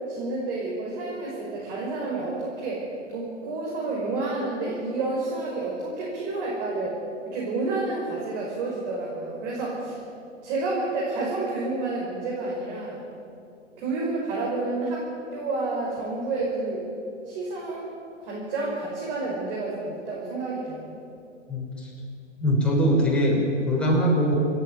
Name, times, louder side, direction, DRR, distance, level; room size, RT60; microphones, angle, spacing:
voice 1, 0.1-2.8 3.1-7.0 7.3-10.0 10.4-13.0 13.8-15.0 15.3-16.8 17.2-17.8 18.2-21.0, right 3 dB, 45° right, -4 dB, 6.0 m, -29 dB
voice 2, 21.5-21.9 22.4-23.4 23.7-24.4, equal, 5° left, -5 dB, 6.2 m, -22 dB
29.5 x 10.5 x 9.4 m, 2.6 s
figure-of-eight pair, 115°, 37 cm